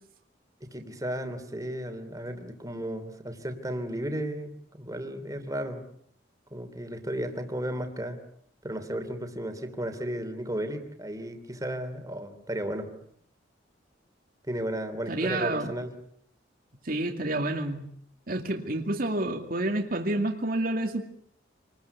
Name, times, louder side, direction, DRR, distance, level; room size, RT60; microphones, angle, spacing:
voice 1, 0.6-5.8 6.5-8.2 8.6-12.9 14.5-15.9, right 1 dB, 20° right, 8 dB, 3.0 m, -34 dB
voice 2, 15.1-15.7 16.8-17.9 18.3-21.0, right 1 dB, 50° right, 2 dB, 2.4 m, -29 dB
27.5 x 20.5 x 8.2 m, 0.68 s
head